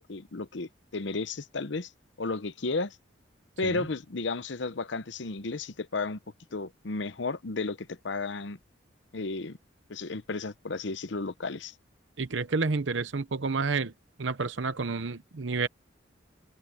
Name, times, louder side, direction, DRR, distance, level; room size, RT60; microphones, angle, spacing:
voice 1, 0.0-1.9 2.2-3.0 3.6-6.2 6.5-8.6 9.1-9.6 9.9-11.7, left 3 dB, 75° left, 0.8 m, -33 dB
voice 2, 12.2-13.9 14.2-15.7, right 4 dB, 80° right, 0.8 m, -30 dB
head